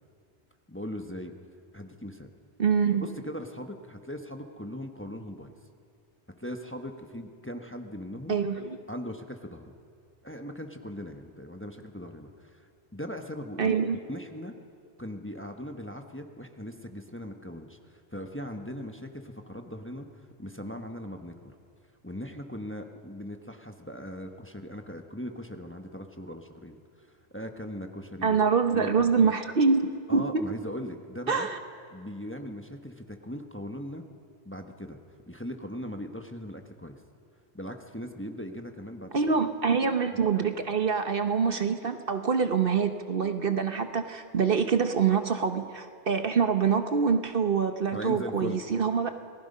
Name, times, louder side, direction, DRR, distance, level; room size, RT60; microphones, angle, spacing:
voice 1, 0.7-1.3 1.7-2.3 3.0-5.5 6.4-8.4 8.9-9.7 10.2-14.5 15.0-20.1 20.4-21.5 22.0-27.1 27.3-28.4 28.7-29.3 30.1-31.5 31.9-34.0 34.4-35.0 35.3-37.0 37.5-39.2 40.4-40.5 47.9-48.6, equal, 10° left, 5 dB, 1.2 m, -39 dB
voice 2, 2.6-3.0 8.3-8.8 13.6-14.0 28.2-30.5 31.3-31.6 39.1-49.1, right 6 dB, 55° right, 8 dB, 1.1 m, -25 dB
28.5 x 19.0 x 5.5 m, 2.4 s
omnidirectional pair, 1.2 m